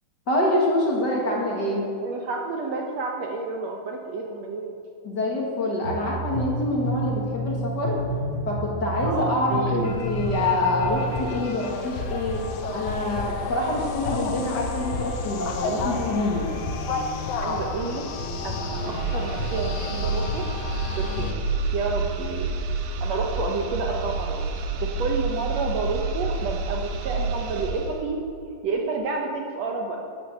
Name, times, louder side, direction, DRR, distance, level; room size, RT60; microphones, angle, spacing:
voice 1, 0.3-1.9 5.0-8.0 8.5-12.4 12.7-16.5, left 2 dB, 40° left, -2 dB, 1.7 m, -26 dB
voice 2, 2.0-4.7 9.0-10.0 17.3-18.0 18.4-20.5 21.0-21.3 21.7-22.5 23.0-24.4 24.8-28.2 28.6-30.0, right 4 dB, 70° right, 1 dB, 1.7 m, -30 dB
sound 1, 5.8-11.2, right 1 dB, 40° right, 4.7 m, -30 dB
sound 2, 9.7-21.3, left 3 dB, 70° left, 2.8 m, -31 dB
sound 3, 18.4-28.0, right 3 dB, 85° right, 2.8 m, -29 dB
12.5 x 10.5 x 6.8 m, 2.6 s
omnidirectional pair, 4.2 m